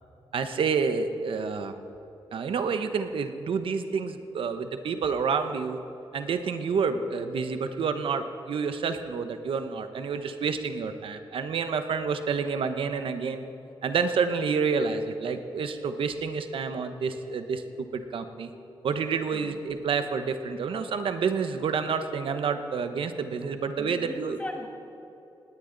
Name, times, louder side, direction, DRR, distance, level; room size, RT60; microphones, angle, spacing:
voice 1, 0.3-1.7 2.3-5.8 6.1-13.4 13.8-18.5 18.8-24.4, right 5 dB, 80° right, 8 dB, 1.0 m, -29 dB
voice 2, 23.8-24.7, left 1 dB, 15° left, 2 dB, 1.8 m, -38 dB
19.5 x 17.5 x 4.0 m, 2.9 s
wide cardioid pair, 150°, 9 cm